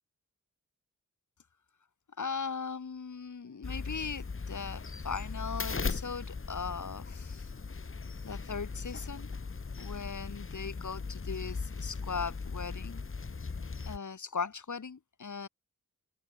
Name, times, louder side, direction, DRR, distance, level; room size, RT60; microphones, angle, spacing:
voice 1, 2.2-7.4 8.2-9.3 9.8-13.0 13.9-15.5, left 5 dB, 60° left, 2.7 m, -39 dB
sound 1, 3.6-14.0, left 4 dB, 40° left, 1.4 m, -38 dB
open air
cardioid pair, 60°, 33 cm